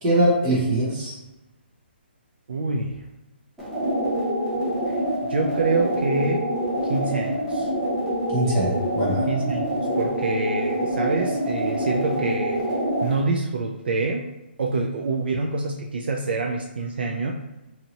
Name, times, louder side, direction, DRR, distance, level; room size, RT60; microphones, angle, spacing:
voice 1, 0.0-1.2 8.3-9.3, right 1 dB, 20° right, -7 dB, 0.9 m, -22 dB
voice 2, 2.5-3.0 4.9-5.0 5.3-6.4 6.8-7.7 9.3-12.7 13.0-14.3 14.6-17.3, right 3 dB, 60° right, 1 dB, 0.4 m, -26 dB
sound 1, 3.6-13.2, equal, ahead, 0.4 m, -26 dB
2.8 x 2.7 x 2.8 m, 0.99 s
hypercardioid pair, 175°, 6 cm